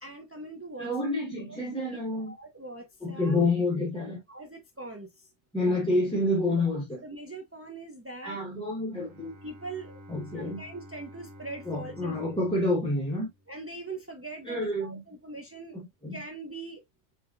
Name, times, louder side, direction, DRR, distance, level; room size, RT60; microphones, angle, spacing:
voice 1, 0.0-0.9 1.5-3.4 4.3-5.3 7.0-8.4 9.4-10.0 10.3-12.2 13.5-15.9 16.1-16.8, right 2 dB, 25° right, 0.3 m, -42 dB
voice 2, 0.8-2.4 3.0-4.2 5.5-7.0 8.2-9.3 10.1-10.6 11.7-13.3 14.5-15.0 16.0-16.2, left 2 dB, 5° left, 1.0 m, -28 dB
Bowed string instrument, 8.9-13.9, equal, 85° right, 1.3 m, -50 dB
5.8 x 3.4 x 2.4 m
omnidirectional pair, 1.3 m